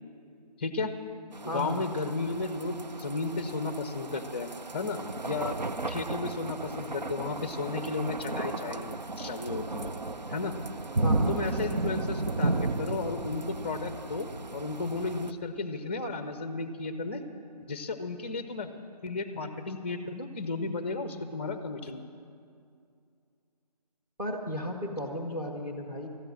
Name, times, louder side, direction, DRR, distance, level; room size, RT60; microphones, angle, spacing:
voice 1, 0.6-0.9 1.4-5.0 5.2-5.6 5.9-9.9 10.3-10.5 11.3-17.2 17.7-18.7 19.0-22.0, left 3 dB, 15° left, 8 dB, 0.6 m, -34 dB
sound 1, 1.3-15.3, right 2 dB, 85° right, 0.7 m, -34 dB
voice 2, 1.5-1.9 11.0-11.4 24.2-26.1, equal, 10° right, 2 dB, 0.9 m, -34 dB
14.0 x 10.5 x 7.4 m, 2.4 s
figure-of-eight pair, 155°, 21 cm